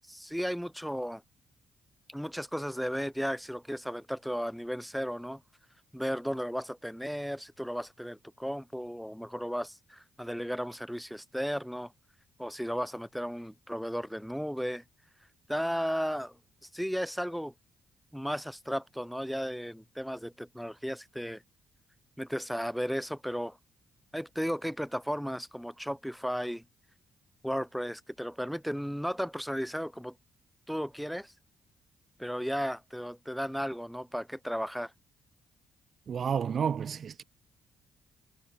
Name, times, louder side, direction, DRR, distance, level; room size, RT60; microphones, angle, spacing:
voice 1, 0.1-1.2 2.1-5.4 5.9-11.9 12.4-14.8 15.5-16.4 16.7-17.5 18.1-21.4 22.2-23.6 24.1-26.6 27.4-30.2 30.7-31.3 32.2-34.9, equal, ahead, 3.7 m, -34 dB
voice 2, 36.1-37.2, right 7 dB, 50° right, 2.4 m, -30 dB
cardioid pair, 90°, 0 cm